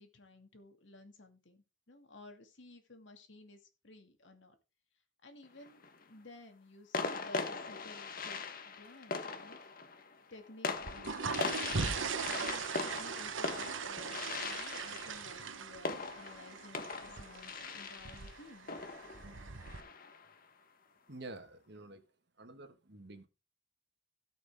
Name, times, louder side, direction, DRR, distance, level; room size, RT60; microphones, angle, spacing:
voice 1, 0.0-4.6 5.2-8.4 8.7-9.6 10.3-10.8 11.1-18.7, left 2 dB, 70° left, 2.4 m, -55 dB
sound 1, 5.4-6.0 6.9-20.3, left 4 dB, 50° left, 1.3 m, -40 dB
sound 2, 10.8-19.8, right 5 dB, 90° right, 1.1 m, -40 dB
voice 2, 21.1-22.0 22.4-23.3, right 2 dB, 60° right, 1.7 m, -49 dB
17.5 x 6.0 x 3.6 m
head